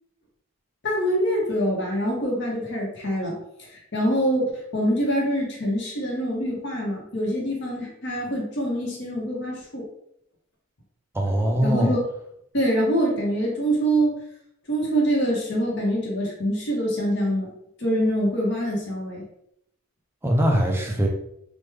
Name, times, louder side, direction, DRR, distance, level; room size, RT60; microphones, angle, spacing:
voice 1, 0.8-3.4 3.7-9.8 11.6-12.0 12.5-14.2 14.7-17.5 17.8-19.2, equal, 55° left, -2 dB, 0.8 m, -25 dB
voice 2, 11.1-11.9 20.2-21.1, equal, 10° right, 0 dB, 0.4 m, -21 dB
3.3 x 2.1 x 3.2 m, 0.77 s
head